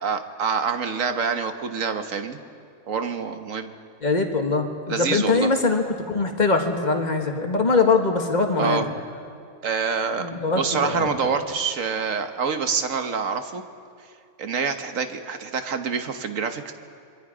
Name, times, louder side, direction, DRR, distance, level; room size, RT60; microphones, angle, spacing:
voice 1, 0.0-2.4 2.9-3.7 4.9-5.5 8.6-8.9 9.6-10.3 10.6-13.6 14.4-16.7, right 5 dB, 60° right, 7 dB, 1.5 m, -26 dB
voice 2, 4.0-8.9 10.2-11.1, left 3 dB, 30° left, 3 dB, 1.7 m, -22 dB
26.0 x 23.0 x 5.1 m, 2.3 s
omnidirectional pair, 1.6 m